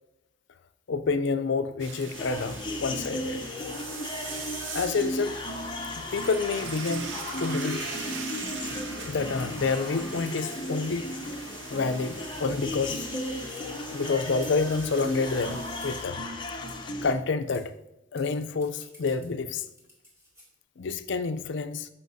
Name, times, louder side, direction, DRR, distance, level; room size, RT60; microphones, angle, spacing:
voice 1, 0.9-3.4 4.7-5.4 6.0-7.1 7.4-7.9 9.0-11.1 11.7-13.1 13.9-16.2 17.0-17.7 18.1-19.6 20.8-21.9, left 4 dB, 60° left, 0.5 m, -28 dB
sound 1, 1.8-16.0, right 5 dB, 65° right, 0.8 m, -41 dB
sound 2, 2.1-17.1, left 1 dB, 25° left, 0.7 m, -35 dB
sound 3, 6.6-6.9 7.3-7.5 8.0-8.1 8.7-9.0 9.4-9.5 10.3-10.9 11.7-12.1 12.8-13.1 13.5-13.7 14.4-15.2 15.8-16.0 16.7-16.8 17.1-17.2 17.5-17.7 18.2-20.5, equal, 15° right, 2.4 m, -52 dB
14.0 x 5.7 x 2.7 m
head